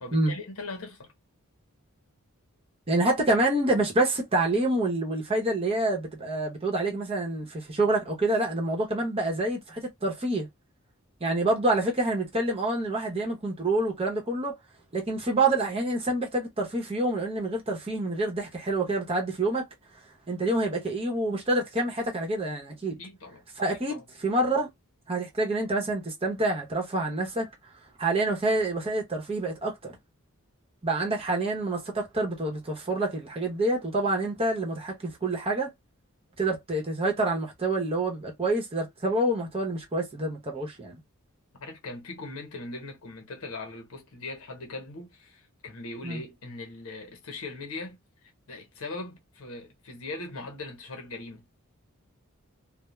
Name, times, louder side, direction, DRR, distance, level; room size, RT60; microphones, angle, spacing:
voice 1, 0.0-1.1 23.0-23.4 23.9-24.0 41.6-48.0 48.5-51.5, left 2 dB, 80° left, 0.9 m, -40 dB
voice 2, 2.9-10.5 11.2-14.6 14.9-19.7 20.3-23.0 23.6-24.7 25.1-27.5 28.0-30.0 30.8-35.7 36.4-41.0 46.0-46.2, right 2 dB, 25° right, 0.8 m, -27 dB
2.3 x 2.1 x 3.0 m
head